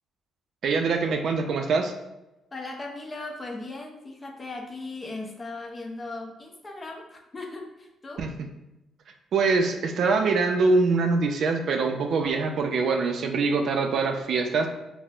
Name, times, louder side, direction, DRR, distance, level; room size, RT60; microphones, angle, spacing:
voice 1, 0.6-1.9 8.2-8.3 9.3-14.7, right 4 dB, 65° right, 4 dB, 0.4 m, -24 dB
voice 2, 2.5-8.2, left 2 dB, 25° left, 1 dB, 0.6 m, -38 dB
4.1 x 2.0 x 2.4 m, 0.94 s
cardioid pair, 90°, 0 cm